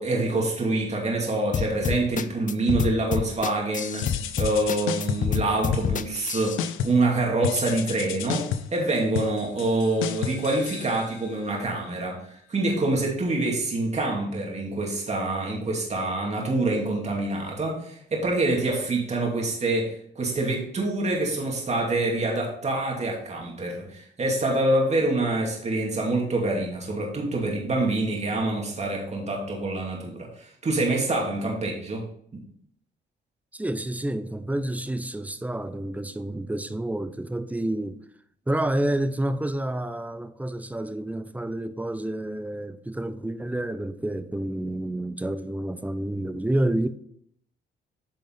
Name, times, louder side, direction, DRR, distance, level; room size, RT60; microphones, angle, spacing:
voice 1, 0.0-32.0, right 2 dB, 35° right, 2.6 m, -26 dB
sound 1, 1.5-6.6, left 7 dB, 40° left, 0.6 m, -27 dB
sound 2, 4.0-5.4 5.7-6.3 6.6-7.1 7.4-11.4, left 8 dB, 90° left, 0.6 m, -32 dB
voice 2, 33.5-38.0 38.5-46.9, right 1 dB, 5° right, 0.6 m, -29 dB
9.0 x 5.3 x 4.0 m
cardioid pair, 90°, 20 cm